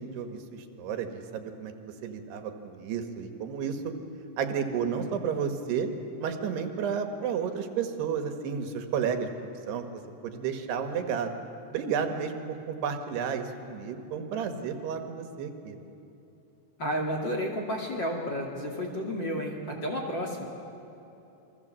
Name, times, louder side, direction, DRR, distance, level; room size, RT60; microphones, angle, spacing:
voice 1, 0.0-1.7 2.0-3.8 4.4-5.9 6.2-9.3 9.7-11.4 11.7-15.8, right 7 dB, 80° right, 6 dB, 3.5 m, -32 dB
voice 2, 16.8-20.4, equal, 35° left, 0 dB, 2.5 m, -31 dB
28.5 x 23.5 x 7.5 m, 3.0 s
omnidirectional pair, 4.7 m